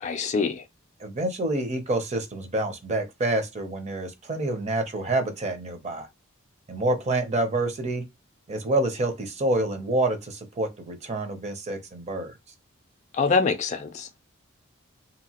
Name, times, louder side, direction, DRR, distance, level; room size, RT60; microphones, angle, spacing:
voice 1, 0.0-0.6 13.1-14.2, left 4 dB, 35° left, 0.3 m, -25 dB
voice 2, 1.0-6.1 6.7-8.0 8.5-12.3, right 2 dB, 30° right, 0.6 m, -27 dB
2.8 x 2.3 x 2.8 m
head